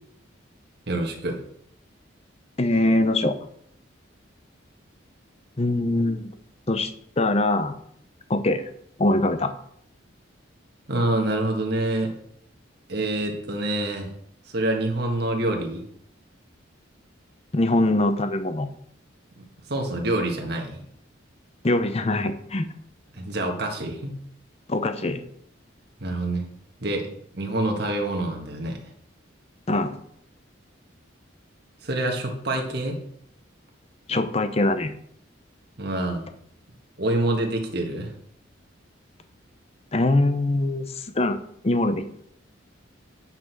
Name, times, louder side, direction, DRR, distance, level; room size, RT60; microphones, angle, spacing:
voice 1, 0.9-1.4 10.9-12.1 12.9-14.1 14.5-15.8 19.7-20.8 23.1-24.2 26.0-26.5 26.8-27.1 27.3-28.8 31.8-33.0 35.8-36.3 37.0-38.1, right 1 dB, 55° right, 2 dB, 1.6 m, -26 dB
voice 2, 2.6-3.4 5.6-6.3 6.7-6.9 7.2-7.7 8.3-8.6 9.0-9.5 17.5-18.7 21.6-22.7 24.7-25.2 29.7-30.0 34.1-34.9 39.9-41.4 41.6-42.0, left 2 dB, 30° left, 9 dB, 0.7 m, -22 dB
8.9 x 6.0 x 4.6 m, 0.67 s
head